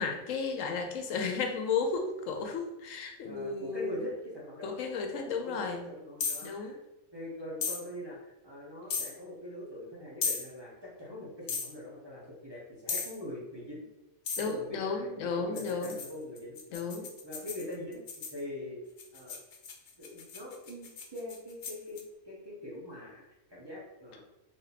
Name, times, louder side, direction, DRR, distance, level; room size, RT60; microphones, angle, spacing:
voice 1, 0.0-4.0 4.6-5.8 6.4-6.8 14.4-16.0 16.7-17.1, left 4 dB, 80° left, 4 dB, 1.0 m, -33 dB
voice 2, 3.2-4.8 5.3-6.8 7.1-13.8 14.3-16.9 17.2-18.0 18.3-18.8 19.1-19.4 20.0-24.2, left 1 dB, 25° right, -6 dB, 0.8 m, -43 dB
sound 1, 6.2-6.5 7.6-7.8 8.9-9.1 10.2-10.5 11.5-11.7 12.9-13.2 14.3-14.5 15.6-18.4 19.0-22.0, left 5 dB, 60° left, 0.5 m, -36 dB
3.2 x 2.7 x 4.0 m, 0.99 s
omnidirectional pair, 1.3 m